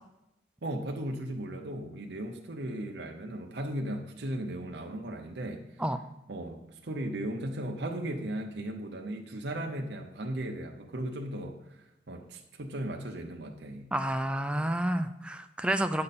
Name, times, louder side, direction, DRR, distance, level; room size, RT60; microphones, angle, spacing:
voice 1, 0.6-5.8 6.3-13.9, right 1 dB, 80° right, 2 dB, 0.9 m, -36 dB
voice 2, 13.9-16.0, right 1 dB, 5° right, 8 dB, 0.4 m, -29 dB
9.6 x 6.7 x 4.2 m, 0.89 s
head